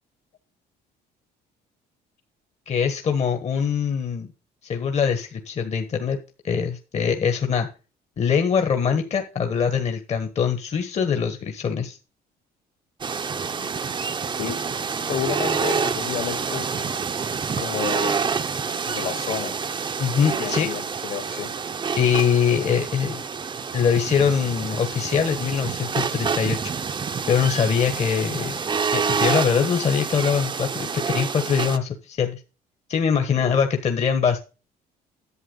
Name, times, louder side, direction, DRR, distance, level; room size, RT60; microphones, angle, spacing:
voice 1, 2.7-4.3 4.7-6.2 6.4-7.7 8.2-12.0 20.0-20.7 22.0-23.2 23.7-26.7 27.3-28.6 28.9-32.4 32.9-34.4, left 7 dB, 40° left, 5 dB, 1.4 m, -23 dB
sound 1, 13.0-31.8, right 5 dB, 30° right, 0.7 m, -27 dB
voice 2, 15.0-16.7 17.6-18.2 18.9-19.5 20.4-21.5 33.4-33.6, left 8 dB, 70° left, 6 dB, 3.2 m, -30 dB
11.0 x 7.7 x 4.0 m, 0.33 s
cardioid pair, 110°, 17 cm